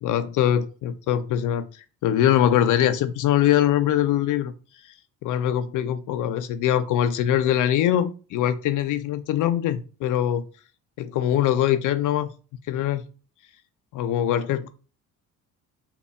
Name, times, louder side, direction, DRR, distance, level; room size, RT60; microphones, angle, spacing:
voice 1, 0.0-4.5 4.8-4.9 5.2-10.5 11.0-12.3 12.7-13.0 13.9-14.7, left 11 dB, 45° left, 10 dB, 0.4 m, -23 dB
5.5 x 2.2 x 2.2 m, 0.36 s
hypercardioid pair, 50°, 44 cm